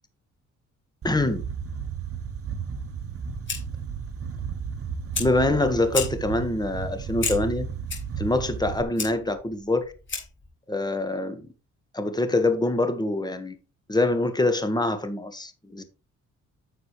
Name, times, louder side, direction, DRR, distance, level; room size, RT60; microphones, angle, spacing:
voice 1, 1.0-1.4 5.2-7.7 8.2-9.9 10.7-11.4 11.9-13.5 13.9-15.8, left 2 dB, 15° left, 1.6 m, -25 dB
sound 1, 1.0-8.8, right 7 dB, 50° right, 1.5 m, -33 dB
Fire, 3.0-10.5, left 4 dB, 40° left, 4.4 m, -36 dB
9.9 x 6.8 x 3.3 m
cardioid pair, 90°, 30 cm